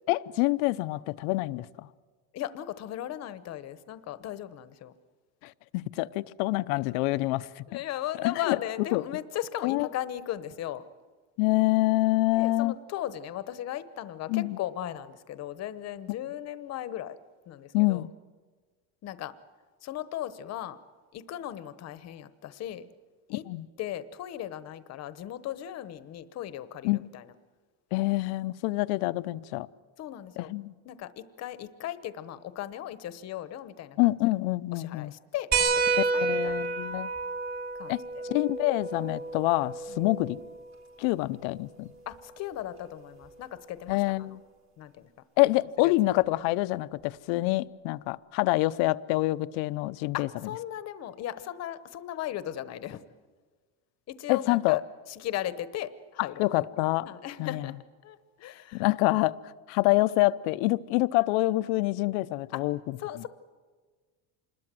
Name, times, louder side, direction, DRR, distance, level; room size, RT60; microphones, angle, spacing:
voice 1, 0.1-1.9 5.4-7.6 8.2-8.6 8.9-9.0 9.6-9.9 11.4-12.7 14.3-14.6 17.7-18.1 23.3-23.7 26.8-27.0 27.9-29.7 30.4-30.7 34.0-35.1 36.0-37.1 37.9-40.4 41.0-41.9 43.9-44.4 45.4-50.3 54.3-54.8 56.2-57.1 57.4-57.7 58.7-59.4 59.7-62.8, left 20 dB, 80° left, 14 dB, 0.8 m, -26 dB
voice 2, 2.3-4.9 7.7-10.8 12.3-17.2 17.5-18.0 19.0-19.3 19.8-20.8 21.1-22.9 23.3-23.4 23.8-27.3 30.0-30.5 30.8-34.1 34.7-36.7 37.8-38.0 39.9-40.0 42.1-44.0 44.8-45.1 45.8-45.9 50.1-53.0 54.1-54.8 55.1-56.5 57.0-57.7 58.0-58.8 62.5-62.6 63.0-63.3, left 12 dB, 40° left, 13 dB, 1.0 m, -37 dB
sound 1, 35.5-40.6 42.1-42.2 43.9-44.0, right 4 dB, 30° right, 2.9 m, -30 dB
27.0 x 21.0 x 7.7 m, 1.4 s
cardioid pair, 175°, 41 cm